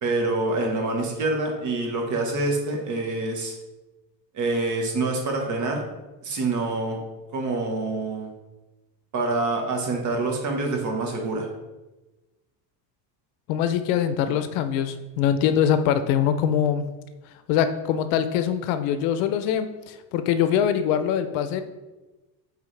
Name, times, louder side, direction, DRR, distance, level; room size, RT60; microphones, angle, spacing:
voice 1, 0.0-3.5 4.3-5.8 6.2-7.0 7.3-8.3 9.1-11.5, right 2 dB, 35° right, 1 dB, 1.3 m, -26 dB
voice 2, 13.5-16.9 17.5-21.6, left 9 dB, 80° left, 10 dB, 0.7 m, -23 dB
8.6 x 3.5 x 3.3 m, 1.1 s
cardioid pair, 150°, 48 cm